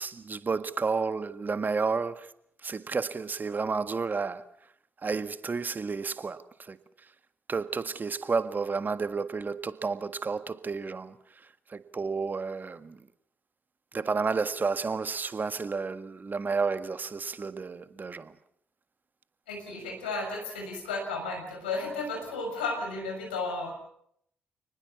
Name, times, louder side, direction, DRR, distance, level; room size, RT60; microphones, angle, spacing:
voice 1, 0.0-2.3 2.6-4.5 5.0-6.8 7.5-11.2 11.7-13.0 13.9-18.3, right 4 dB, 40° right, 1.7 m, -31 dB
voice 2, 19.5-23.7, left 3 dB, 85° left, 6.5 m, -33 dB
28.5 x 20.0 x 7.1 m
hypercardioid pair, 40°, 5 cm